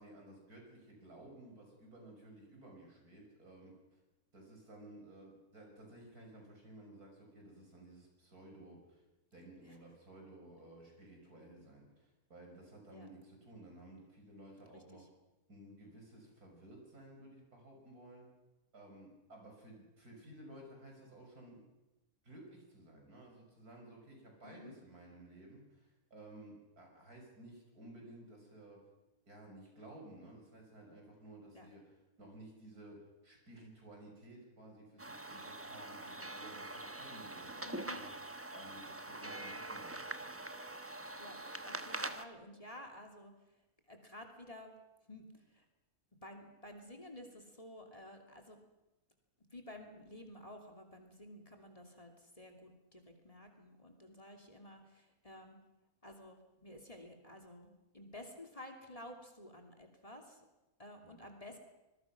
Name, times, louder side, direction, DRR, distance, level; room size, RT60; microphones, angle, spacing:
voice 1, 0.0-4.0 4.3-9.0 9.3-15.1 15.5-18.3 18.7-21.7 22.2-28.8 29.3-38.1 38.5-40.3 61.0-61.1, right 1 dB, 90° right, 1 dB, 6.7 m, -55 dB
voice 2, 14.7-15.1 24.4-24.8 31.5-31.7 37.6-38.0 41.2-43.3 43.9-44.7 45.1-45.6 46.2-48.6 49.5-55.6 56.0-60.4 60.8-61.6, left 1 dB, 25° left, 4 dB, 2.9 m, -52 dB
sound 1, 35.0-42.2, right 2 dB, 10° right, 0.9 m, -44 dB
25.5 x 21.0 x 6.0 m, 0.99 s
omnidirectional pair, 1.5 m